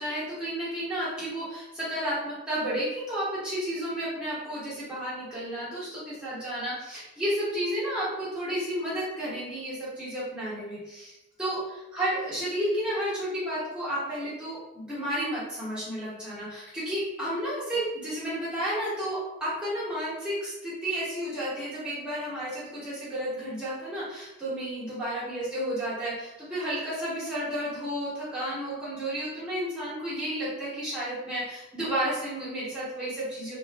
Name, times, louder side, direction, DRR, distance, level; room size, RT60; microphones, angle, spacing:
voice 1, 0.0-11.6 11.9-33.5, equal, 5° right, -10 dB, 1.2 m, -32 dB
3.0 x 2.4 x 3.0 m, 0.91 s
head